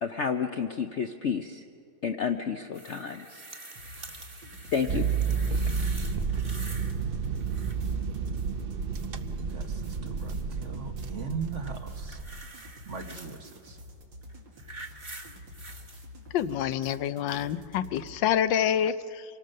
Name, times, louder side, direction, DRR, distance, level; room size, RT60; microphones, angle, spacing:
voice 1, 0.0-1.6 2.0-3.4 4.7-5.1, left 6 dB, 60° left, 6 dB, 0.7 m, -30 dB
sound 1, 2.7-7.0 7.2-8.0 11.7-13.4 14.2-16.0 16.8-16.9, right 2 dB, 20° right, 1.2 m, -46 dB
sound 2, 3.7-18.2, left 1 dB, 90° right, 2.9 m, -48 dB
sound 3, 4.9-12.4, right 5 dB, 70° right, 0.5 m, -31 dB
voice 2, 9.3-12.2 12.9-13.8, right 6 dB, 50° right, 6 dB, 1.1 m, -39 dB
voice 3, 16.3-19.2, left 9 dB, 85° left, 13 dB, 1.4 m, -27 dB
25.5 x 18.5 x 6.5 m, 2.4 s
omnidirectional pair, 2.0 m